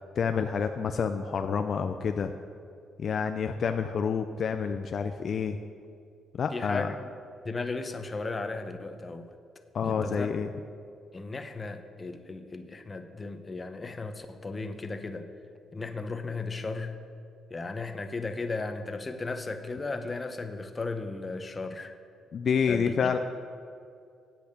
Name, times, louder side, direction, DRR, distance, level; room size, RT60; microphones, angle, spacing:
voice 1, 0.0-2.3 3.0-5.6 6.3-6.9 9.7-10.5 22.3-23.2, left 6 dB, 55° left, 7 dB, 0.4 m, -28 dB
voice 2, 6.5-7.1 7.4-9.3 9.8-10.3 11.1-15.3 15.7-17.0 17.5-21.9 22.7-23.2, left 3 dB, 30° left, 8 dB, 0.9 m, -35 dB
8.6 x 8.4 x 6.7 m, 2.4 s
cardioid pair, 90°, 0 cm